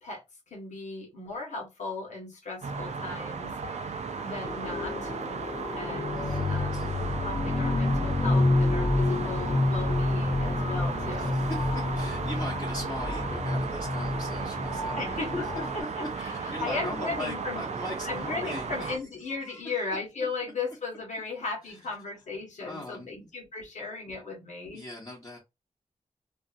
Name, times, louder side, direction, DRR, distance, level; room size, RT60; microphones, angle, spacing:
voice 1, 0.0-3.5 4.2-5.1 5.7-6.9 7.2-11.4 15.0-15.4 15.7-17.7 18.0-24.9, left 3 dB, 85° left, 1.1 m, -36 dB
sound 1, 2.6-19.0, right 5 dB, 70° right, 0.4 m, -35 dB
sound 2, 4.4-15.8, left 2 dB, 55° left, 0.7 m, -29 dB
voice 2, 6.1-6.9 11.1-15.2 15.5-15.6 16.0-18.9 19.2-19.8 21.7-21.8 22.6-23.3 24.7-25.4, left 1 dB, 20° left, 0.8 m, -40 dB
2.6 x 2.4 x 2.4 m
wide cardioid pair, 115°, 12 cm